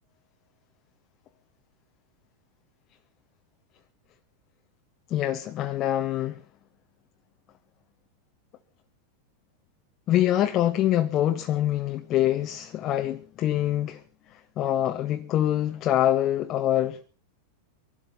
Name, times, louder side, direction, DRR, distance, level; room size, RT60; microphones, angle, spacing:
voice 1, 5.1-6.4 10.1-14.0 14.6-17.0, left 12 dB, 35° left, 0.8 m, -25 dB
24.0 x 12.0 x 4.1 m
figure-of-eight pair, 90°, 0 cm